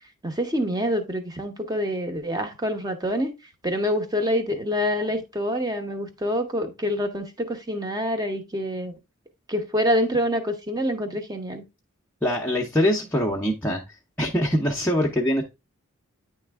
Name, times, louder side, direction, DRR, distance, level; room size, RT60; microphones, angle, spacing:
voice 1, 0.2-3.3 3.6-8.9 9.5-11.6, equal, 15° right, 0.9 m, -26 dB
voice 2, 12.2-13.8 14.2-15.4, equal, 5° left, 0.7 m, -23 dB
9.7 x 3.3 x 3.4 m
head